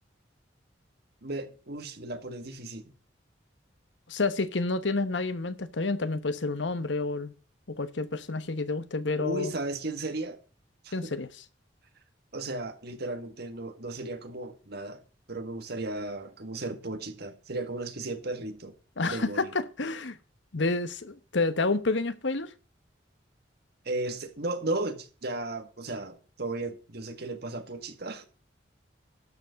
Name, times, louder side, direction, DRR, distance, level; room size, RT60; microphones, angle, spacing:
voice 1, 1.2-2.9 9.2-10.4 10.8-11.1 12.3-15.0 15.3-18.7 19.1-19.5 23.9-28.3, right 2 dB, 55° right, 1.8 m, -35 dB
voice 2, 4.1-7.3 7.7-9.5 10.9-11.3 19.0-20.2 20.5-22.5, left 3 dB, 70° left, 1.1 m, -29 dB
12.0 x 7.1 x 5.2 m
head